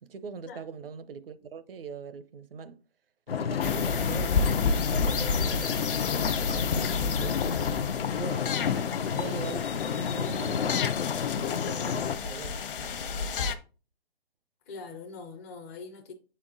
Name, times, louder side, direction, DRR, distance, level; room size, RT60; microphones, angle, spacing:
voice 1, 0.0-2.8 3.3-7.4 8.2-8.5 9.1-10.7 11.2-12.6, right 6 dB, 65° right, 0.8 m, -42 dB
sound 1, 3.3-12.2, left 7 dB, 80° left, 0.6 m, -30 dB
sound 2, 3.6-13.5, left 4 dB, 60° left, 0.9 m, -31 dB
voice 2, 14.7-16.1, left 4 dB, 15° left, 0.4 m, -43 dB
6.9 x 4.3 x 3.8 m
hypercardioid pair, 145°, 30 cm